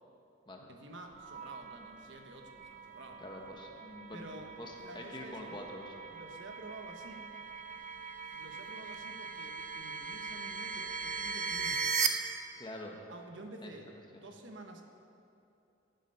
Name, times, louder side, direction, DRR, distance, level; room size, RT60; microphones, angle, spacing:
voice 1, 0.6-3.2 4.1-4.5 4.8-5.7 6.1-7.3 8.3-12.0 13.1-14.8, right 2 dB, 65° right, 4 dB, 1.3 m, -50 dB
sound 1, 1.1-12.1, right 5 dB, 35° right, 0.7 m, -39 dB
voice 2, 3.2-5.9 12.6-12.9 13.6-13.7 14.1-14.2, left 1 dB, 25° left, 0 dB, 1.4 m, -46 dB
14.5 x 11.0 x 5.7 m, 2.7 s
head